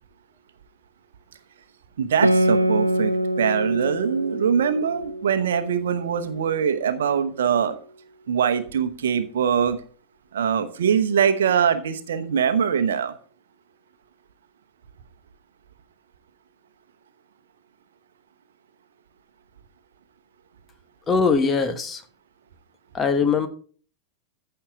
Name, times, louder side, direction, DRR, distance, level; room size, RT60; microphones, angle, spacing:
voice 1, 2.0-7.7 8.3-9.8 10.3-13.1, right 7 dB, 65° right, 8 dB, 1.0 m, -23 dB
Guitar, 2.2-7.2, right 1 dB, 85° right, 0.5 m, -25 dB
voice 2, 21.1-22.0 22.9-23.5, left 5 dB, 20° left, 8 dB, 1.2 m, -21 dB
14.5 x 5.8 x 3.6 m, 0.43 s
figure-of-eight pair, 90°, 0 cm